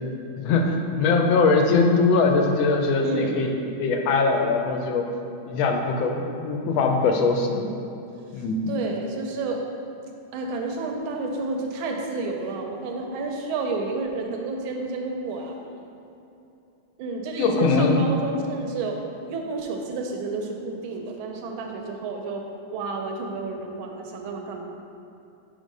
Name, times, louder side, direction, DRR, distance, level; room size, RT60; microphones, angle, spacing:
voice 1, 0.4-5.0 5.5-7.7 8.3-8.7 17.4-18.1, left 4 dB, 80° left, 3 dB, 1.3 m, -21 dB
voice 2, 3.0-3.5 8.7-9.6 10.3-15.5 17.0-22.4 22.7-24.7, right 3 dB, 90° right, 2 dB, 1.4 m, -30 dB
5.2 x 3.6 x 5.2 m, 2.7 s
omnidirectional pair, 2.2 m